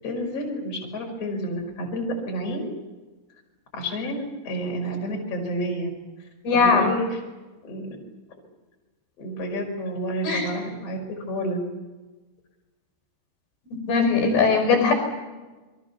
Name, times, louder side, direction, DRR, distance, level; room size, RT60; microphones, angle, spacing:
voice 1, 0.0-2.7 3.7-5.9 6.2-7.2 7.6-7.9 9.2-11.6, equal, 35° left, 2 dB, 6.2 m, -30 dB
voice 2, 6.4-6.9 10.3-10.5 13.7-14.9, left 4 dB, 65° left, 5 dB, 7.2 m, -20 dB
29.0 x 23.0 x 7.1 m, 1.2 s
omnidirectional pair, 5.0 m